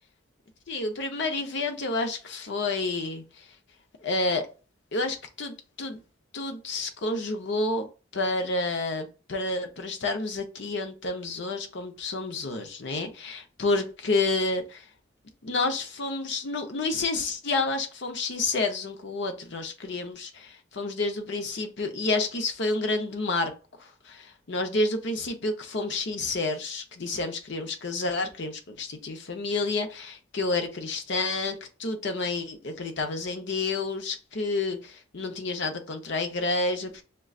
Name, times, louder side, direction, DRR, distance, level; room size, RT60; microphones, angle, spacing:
voice 1, 0.7-3.4 4.0-4.5 4.9-6.0 6.3-7.9 8.1-14.8 15.4-23.5 23.8-37.0, left 3 dB, 60° left, 0.7 m, -29 dB
6.1 x 2.2 x 2.3 m
head